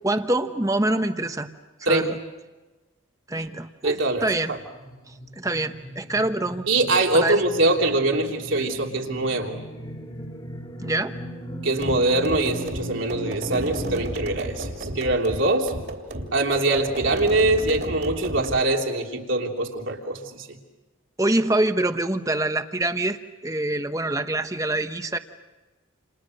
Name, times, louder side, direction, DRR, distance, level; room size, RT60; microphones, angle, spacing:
voice 1, 0.0-1.5 1.9-2.2 3.3-4.5 5.1-6.7 7.1-7.4 10.8-11.1 21.2-25.2, right 2 dB, 15° right, 8 dB, 1.0 m, -25 dB
voice 2, 3.8-4.6 6.7-9.5 11.6-15.7 16.3-20.5, right 2 dB, 75° right, 1 dB, 3.2 m, -23 dB
sound 1, 4.2-14.0, equal, 25° left, 2.5 m, -37 dB
sound 2, 11.8-18.7, right 1 dB, 50° right, 3.1 m, -34 dB
29.5 x 29.0 x 6.5 m, 1.2 s
head